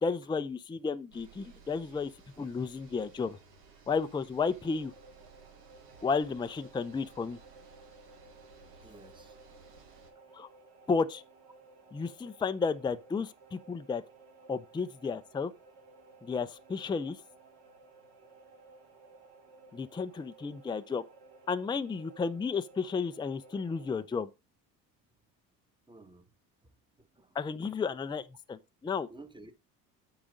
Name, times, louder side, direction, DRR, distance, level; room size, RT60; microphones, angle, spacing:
voice 1, 0.0-2.1 2.4-3.4 3.9-4.9 6.0-7.4 10.3-10.5 10.9-11.2 11.9-14.0 14.5-15.5 16.2-17.2 19.7-21.0 21.5-24.3 27.3-29.1, left 5 dB, 10° left, 0.5 m, -32 dB
sound 1, 1.1-10.1, right 4 dB, 85° right, 1.7 m, -57 dB
sound 2, 4.6-24.0, right 3 dB, 60° right, 2.7 m, -56 dB
voice 2, 8.8-9.6 25.9-26.3 27.0-27.4 29.1-29.5, right 2 dB, 10° right, 1.2 m, -53 dB
8.7 x 4.9 x 5.1 m
hypercardioid pair, 60°, 48 cm